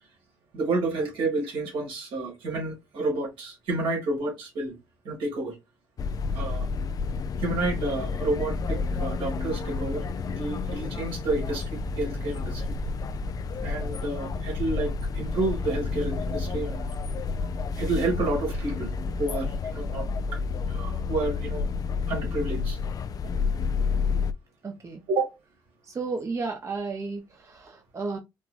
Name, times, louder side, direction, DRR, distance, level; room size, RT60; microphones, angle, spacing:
voice 1, 0.5-4.8 5.0-5.5 6.3-6.7 7.4-12.6 13.6-16.9 17.8-18.9 19.2-20.4 20.7-21.7 22.1-22.8 25.1-25.3, right 2 dB, 75° right, 2.0 m, -30 dB
sound 1, 6.0-24.3, left 4 dB, 45° left, 0.4 m, -30 dB
voice 2, 24.6-25.0 25.9-28.2, right 4 dB, 35° right, 0.8 m, -33 dB
4.4 x 2.2 x 2.5 m
supercardioid pair, 75°, 9 cm